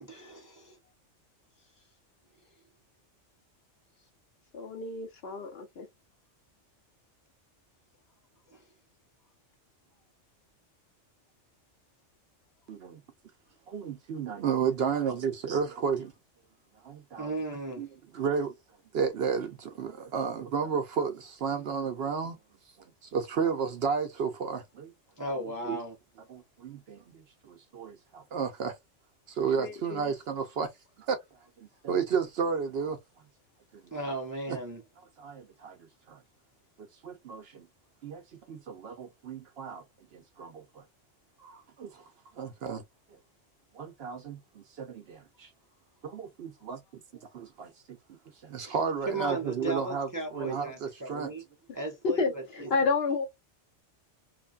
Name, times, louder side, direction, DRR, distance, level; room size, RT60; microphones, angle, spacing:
voice 1, 0.0-0.8 8.5-8.6 17.2-17.9 25.2-26.0 33.9-34.8 48.6-48.7 49.1-51.4 51.7-52.7, right 2 dB, 25° right, 0.5 m, -36 dB
voice 2, 4.5-5.9 29.6-30.1 52.0-53.3, left 4 dB, 60° left, 1.0 m, -30 dB
voice 3, 12.7-13.0 13.7-16.1 16.8-17.3 17.8-18.5 18.9-22.4 23.0-24.9 25.3-25.8 26.3-28.8 29.3-30.7 31.0-31.2 31.6-33.0 34.5-34.6 35.2-35.8 36.1-36.2 36.8-37.7 38.0-38.2 38.5-39.8 40.1-40.8 41.4-42.1 42.3-42.8 43.7-45.5 46.0-46.8 47.3-51.3 52.2-52.3, right 6 dB, 65° right, 0.7 m, -33 dB
3.2 x 2.2 x 2.3 m
omnidirectional pair, 1.3 m